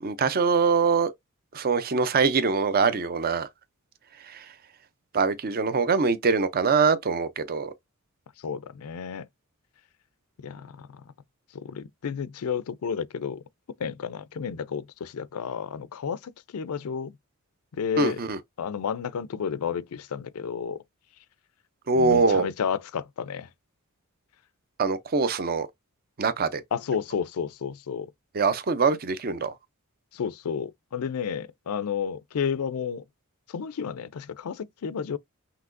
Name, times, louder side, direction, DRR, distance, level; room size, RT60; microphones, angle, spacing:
voice 1, 0.0-1.1 1.5-3.5 4.2-4.5 5.1-7.7 18.0-18.4 21.9-22.5 24.8-25.7 26.2-26.6 28.3-29.5, right 4 dB, 45° right, 0.5 m, -23 dB
voice 2, 8.4-9.3 10.4-11.1 11.5-13.4 13.8-17.2 17.7-18.2 18.6-20.8 21.9-23.5 26.7-28.1 30.1-33.0 33.5-35.2, left 7 dB, 80° left, 0.4 m, -31 dB
5.9 x 2.8 x 2.5 m
head